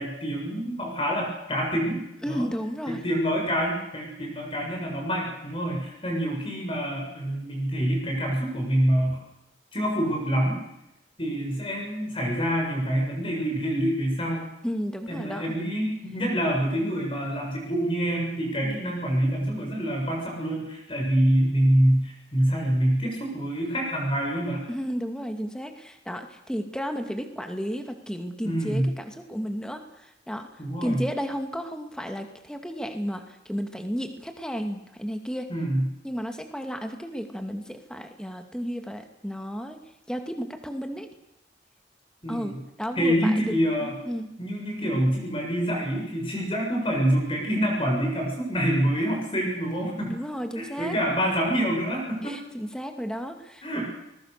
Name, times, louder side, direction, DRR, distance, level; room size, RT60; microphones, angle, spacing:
voice 1, 0.0-2.0 2.3-2.5 2.9-9.2 9.7-10.6 11.2-14.5 15.1-24.6 28.4-28.9 30.6-31.0 35.5-35.8 42.2-42.6 43.0-43.9 44.4-50.1 50.6-52.4 53.6-53.8, equal, 30° left, 0 dB, 7.1 m, -26 dB
voice 2, 2.2-3.0 14.6-15.6 24.7-35.5 36.0-39.8 40.1-41.1 42.3-43.5 43.8-44.3 50.1-51.0 52.2-53.8, equal, 5° left, 5 dB, 2.4 m, -33 dB
29.5 x 21.5 x 6.8 m, 0.88 s
head